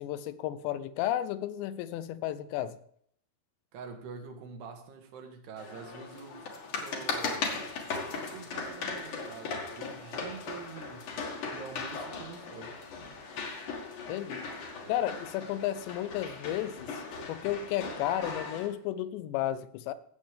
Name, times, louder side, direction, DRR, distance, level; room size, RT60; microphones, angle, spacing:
voice 1, 0.0-2.8 14.1-14.5 14.9-17.0 17.3-19.9, left 12 dB, 90° left, 14 dB, 2.9 m, -33 dB
voice 2, 3.7-7.5 7.9-11.1 11.5-12.8, right 5 dB, 75° right, 4 dB, 3.4 m, -46 dB
sound 1, 5.6-18.7, left 4 dB, 55° left, 2.8 m, -38 dB
17.0 x 7.4 x 3.5 m, 0.64 s
omnidirectional pair, 5.0 m